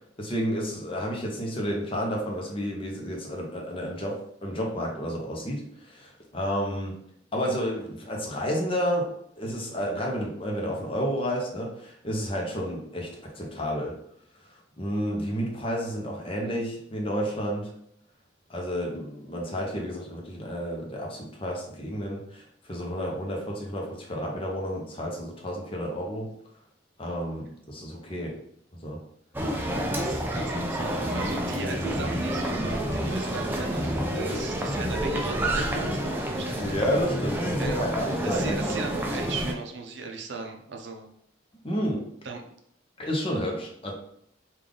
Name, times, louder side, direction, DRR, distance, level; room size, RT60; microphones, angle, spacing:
voice 1, 0.2-7.0 7.3-9.1 9.4-14.0 14.8-17.7 18.5-26.3 27.0-28.4 28.8-29.0 29.9-30.1 34.3-34.4 36.6-38.7 41.6-42.0 43.0-43.9, equal, 30° left, -1 dB, 0.7 m, -31 dB
sound 1, 29.3-39.5, equal, 10° right, 0.3 m, -29 dB
voice 2, 30.0-36.8 37.6-41.1 42.2-42.4, right 3 dB, 65° right, 3 dB, 0.6 m, -37 dB
3.5 x 2.4 x 3.7 m, 0.71 s
head